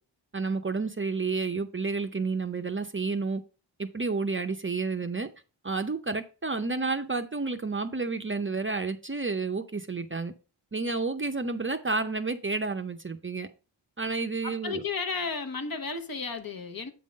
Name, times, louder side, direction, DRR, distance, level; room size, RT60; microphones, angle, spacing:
voice 1, 0.3-3.4 3.8-5.3 5.6-10.3 10.7-13.5 14.0-14.8, right 4 dB, 30° right, 0.6 m, -30 dB
voice 2, 14.4-16.9, left 4 dB, 50° left, 1.0 m, -33 dB
8.4 x 3.7 x 5.2 m
wide cardioid pair, 120°, 45 cm